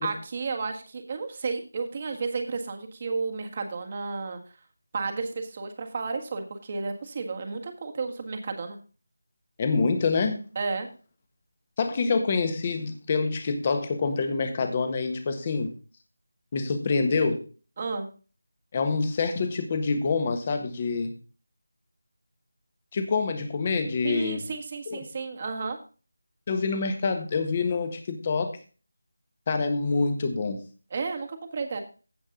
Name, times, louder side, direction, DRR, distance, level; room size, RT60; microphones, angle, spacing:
voice 1, 0.0-4.4 4.9-8.8 10.5-10.9 17.8-18.1 24.0-25.8 30.9-31.8, right 4 dB, 30° right, 5 dB, 1.6 m, -32 dB
voice 2, 9.6-10.4 11.8-15.7 16.5-17.4 18.7-21.1 22.9-24.4 24.9-25.0 26.5-28.5 29.5-30.6, left 4 dB, 25° left, 7 dB, 1.5 m, -26 dB
15.5 x 5.3 x 3.8 m, 0.36 s
figure-of-eight pair, 170°, 0 cm